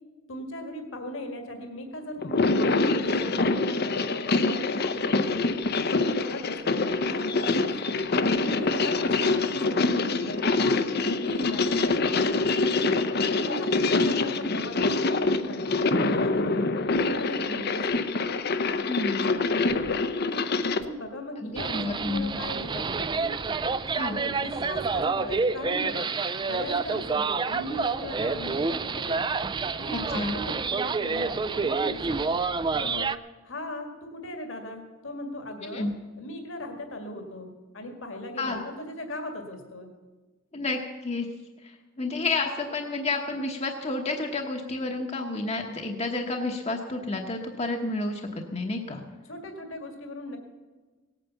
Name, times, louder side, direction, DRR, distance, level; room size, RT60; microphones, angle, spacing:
voice 1, 0.3-3.6 3.8-5.7 6.0-8.1 8.5-10.6 11.1-12.3 12.8-13.1 13.4-16.7 16.9-18.0 20.7-23.4 23.9-29.2 29.8-32.4 32.7-33.2 33.4-35.9 36.2-37.5 37.7-39.9 49.3-50.4, left 1 dB, 70° left, 4 dB, 1.9 m, -38 dB
sound 1, 2.2-20.8, left 3 dB, 50° left, 0.7 m, -25 dB
voice 2, 18.9-19.3 21.4-22.3 23.9-24.2 29.9-30.4 35.7-35.9 38.4-38.6 40.5-41.3 41.6-49.0, left 3 dB, 30° left, 2 dB, 1.0 m, -30 dB
sound 2, 21.6-33.2, right 4 dB, 20° right, 0.4 m, -28 dB
17.5 x 9.1 x 7.0 m, 1.3 s
head